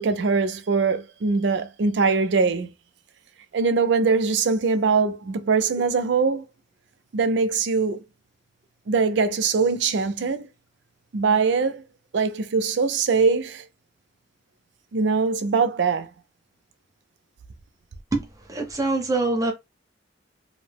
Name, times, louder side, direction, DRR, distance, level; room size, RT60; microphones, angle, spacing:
voice 1, 0.0-2.7 3.5-6.4 7.1-8.0 8.9-10.5 11.1-11.8 12.1-13.6 14.9-16.1, right 4 dB, 65° right, 0.4 m, -22 dB
voice 2, 18.5-19.5, right 2 dB, 20° right, 0.6 m, -24 dB
2.6 x 2.0 x 3.3 m
head